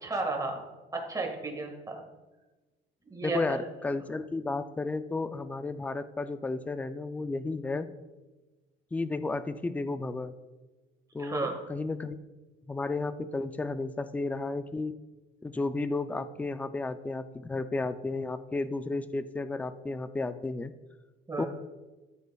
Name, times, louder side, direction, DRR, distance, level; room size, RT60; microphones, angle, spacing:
voice 1, 0.0-0.6 0.9-2.0 3.1-3.6 11.2-11.5 21.3-21.5, right 3 dB, 15° right, 2 dB, 1.6 m, -33 dB
voice 2, 3.2-7.9 8.9-10.3 11.1-12.2 12.7-14.9 15.4-20.7 21.4-21.5, left 3 dB, 5° left, 11 dB, 0.3 m, -33 dB
13.5 x 8.4 x 2.3 m, 1.2 s
cardioid pair, 150°, 20 cm